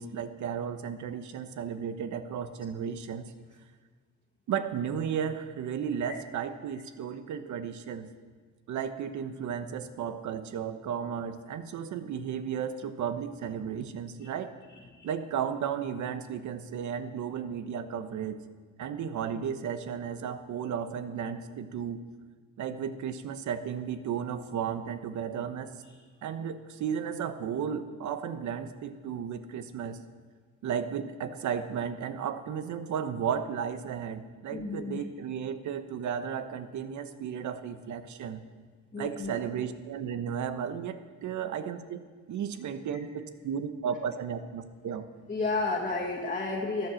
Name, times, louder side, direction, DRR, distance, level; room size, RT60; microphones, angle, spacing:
voice 1, 0.0-3.3 4.5-8.1 8.7-14.5 15.0-18.4 18.8-22.0 22.6-25.7 26.2-30.0 30.6-38.4 39.0-42.0 42.3-45.1, right 8 dB, 70° right, 10 dB, 1.1 m, -34 dB
voice 2, 34.5-35.0 38.9-39.4 45.3-46.9, left 3 dB, 25° left, -4 dB, 1.9 m, -32 dB
13.5 x 10.5 x 6.4 m, 1.5 s
cardioid pair, 90°, 30 cm